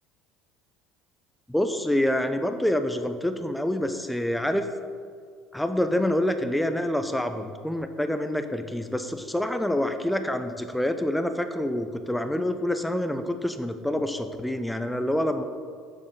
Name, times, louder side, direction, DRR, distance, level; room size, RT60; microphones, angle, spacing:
voice 1, 1.5-4.7 5.5-15.4, left 1 dB, 5° left, 8 dB, 0.6 m, -27 dB
7.1 x 4.8 x 5.2 m, 2.1 s
figure-of-eight pair, 65°, 0 cm